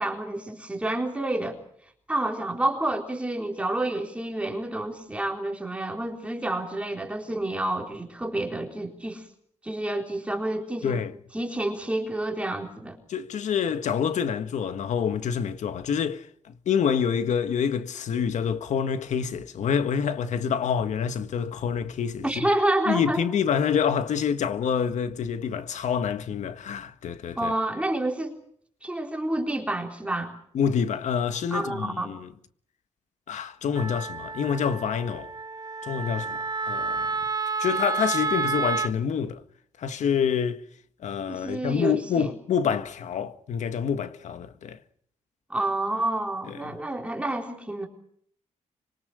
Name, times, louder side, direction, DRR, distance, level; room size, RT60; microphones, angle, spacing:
voice 1, 0.0-1.6 2.1-9.3 9.6-11.0 11.3-13.0 22.2-23.2 27.4-28.4 28.8-30.3 31.5-32.1 41.3-42.3 45.5-47.9, right 1 dB, 10° right, 3.9 m, -29 dB
voice 2, 13.1-16.3 16.7-22.5 22.9-27.5 30.5-32.3 33.3-35.3 35.8-37.1 37.6-39.4 39.8-40.6 41.0-44.8 46.5-46.6, left 7 dB, 75° left, 1.7 m, -27 dB
Wind instrument woodwind instrument, 33.7-38.9, right 4 dB, 30° right, 1.4 m, -30 dB
26.0 x 24.0 x 6.4 m
wide cardioid pair, 165°, 12 cm